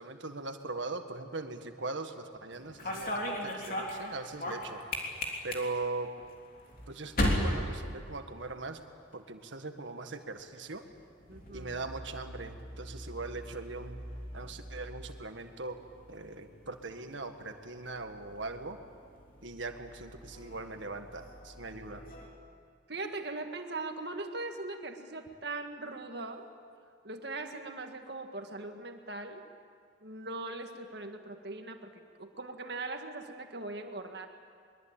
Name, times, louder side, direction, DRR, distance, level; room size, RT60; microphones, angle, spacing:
voice 1, 0.0-4.8 5.4-6.2 6.9-8.8 9.1-10.8 11.5-14.0 14.3-15.8 16.1-18.8 19.4-22.0, right 3 dB, 75° right, 6 dB, 1.7 m, -40 dB
sound 1, 2.5-8.7 9.0-9.5 10.6-22.3, left 1 dB, 45° left, 3.5 m, -39 dB
voice 2, 11.3-11.8 22.9-26.5 27.0-29.4 30.0-31.9 32.2-34.3, right 2 dB, 55° right, 5 dB, 1.9 m, -40 dB
23.0 x 22.0 x 8.9 m, 2.2 s
head